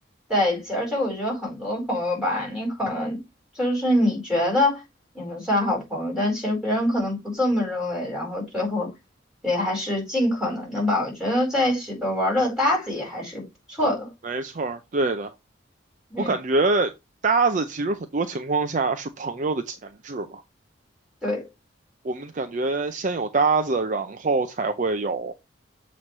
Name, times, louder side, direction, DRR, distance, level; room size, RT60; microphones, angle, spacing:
voice 1, 0.3-3.2 3.6-4.8 5.1-8.9 9.4-13.4 13.7-14.1 16.1-16.3 21.2-21.5, left 1 dB, 5° right, 4.6 m, -24 dB
voice 2, 14.2-15.3 16.2-16.9 17.2-20.4 22.0-25.3, right 3 dB, 40° right, 0.5 m, -25 dB
7.5 x 3.1 x 5.3 m
head